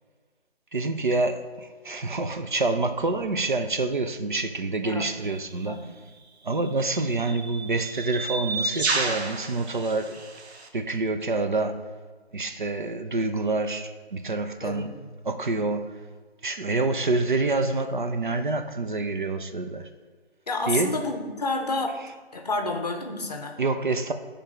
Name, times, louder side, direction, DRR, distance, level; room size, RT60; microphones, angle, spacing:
voice 1, 0.7-5.8 6.4-10.2 10.7-11.8 12.3-15.0 15.2-15.9 16.4-19.9 20.7-21.0 23.6-24.1, right 3 dB, 50° right, 0.4 m, -27 dB
sound 1, 5.3-5.5 6.5-10.7, right 3 dB, 75° right, 0.8 m, -31 dB
voice 2, 5.6-6.0 14.6-14.9 20.5-22.0 22.3-23.6, left 2 dB, 40° left, 0.7 m, -29 dB
9.8 x 3.3 x 3.6 m
hypercardioid pair, 170°, 32 cm